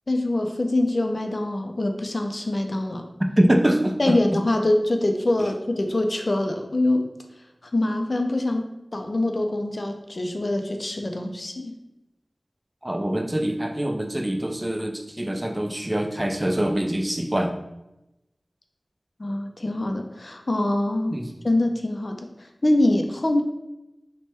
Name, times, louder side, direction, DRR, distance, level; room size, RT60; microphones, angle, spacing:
voice 1, 0.1-3.1 4.0-7.1 7.6-11.7 19.2-21.2 21.4-23.4, left 1 dB, 55° left, 4 dB, 0.4 m, -24 dB
voice 2, 3.2-4.4 12.8-17.5 21.1-21.3, right 1 dB, 20° right, 3 dB, 0.4 m, -24 dB
3.3 x 2.2 x 4.2 m, 0.92 s
wide cardioid pair, 55°, 0 cm